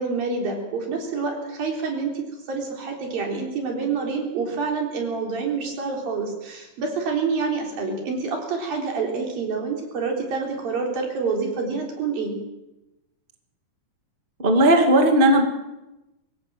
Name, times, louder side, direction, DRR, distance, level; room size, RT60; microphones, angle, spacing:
voice 1, 0.0-12.3, right 4 dB, 60° right, 1 dB, 5.4 m, -27 dB
voice 2, 14.4-15.4, right 1 dB, 20° right, 4 dB, 1.7 m, -16 dB
24.0 x 16.5 x 7.7 m, 0.98 s
omnidirectional pair, 4.6 m